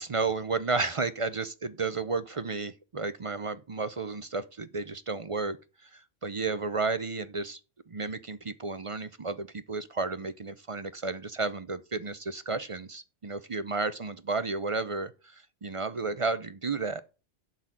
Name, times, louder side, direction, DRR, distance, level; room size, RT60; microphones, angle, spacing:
voice 1, 0.0-5.6 5.8-7.6 7.9-17.0, right 3 dB, 40° right, 0.5 m, -32 dB
11.5 x 4.1 x 7.6 m
omnidirectional pair, 1.2 m